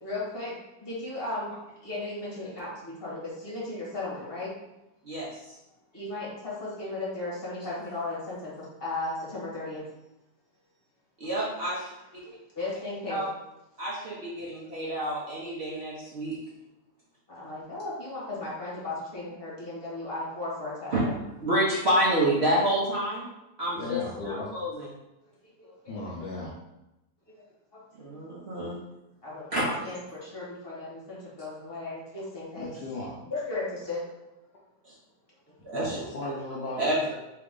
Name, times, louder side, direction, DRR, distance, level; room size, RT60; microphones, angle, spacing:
voice 1, 0.0-0.5 0.8-1.5 1.8-4.5 5.9-9.9 12.2-13.2 17.3-21.2 25.6-26.1 27.4-27.5 27.7-28.1 29.2-32.8 33.3-34.1, left 2 dB, 35° left, -7 dB, 1.6 m, -36 dB
voice 2, 5.0-5.6 11.2-11.9 13.1-13.2 13.8-16.3 20.9-21.0 21.4-23.3 23.6-24.9 28.0-28.8 29.5-29.6 34.8-34.9 35.6-36.0 36.8-37.1, right 1 dB, 45° right, -6 dB, 0.9 m, -28 dB
voice 3, 23.8-24.5 25.9-26.5 32.5-33.3 35.7-36.9, left 2 dB, 75° left, -3 dB, 0.5 m, -36 dB
3.6 x 3.3 x 3.6 m, 0.92 s
omnidirectional pair, 1.9 m